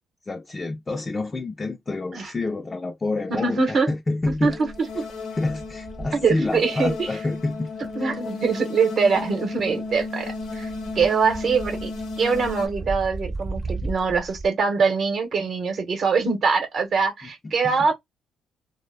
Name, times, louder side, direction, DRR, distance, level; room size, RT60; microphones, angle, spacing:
voice 1, 0.3-4.6 5.3-7.7 8.0-8.2 17.4-17.8, left 2 dB, 25° left, 0.4 m, -28 dB
voice 2, 3.3-3.9 4.4-4.5 5.0-5.1 6.2-7.1 8.0-10.7 10.9-11.9 12.2-17.9, right 5 dB, 55° right, 0.8 m, -23 dB
sound 1, 4.2-9.0 9.3-14.5, right 2 dB, 25° right, 0.6 m, -36 dB
sound 2, 4.5-12.7, left 3 dB, 75° left, 0.8 m, -34 dB
2.0 x 2.0 x 3.2 m
cardioid pair, 90°, 0 cm